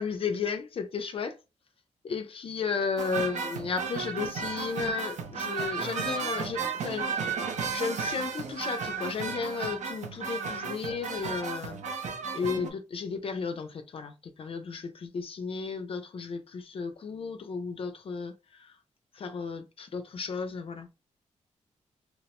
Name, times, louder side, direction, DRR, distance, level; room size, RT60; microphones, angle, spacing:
voice 1, 0.0-1.4 2.0-7.3 7.7-18.8 19.1-20.9, left 5 dB, 50° left, 0.4 m, -34 dB
sound 1, 3.0-12.7, right 5 dB, 75° right, 0.5 m, -34 dB
2.8 x 2.0 x 2.9 m
wide cardioid pair, 110°, 12 cm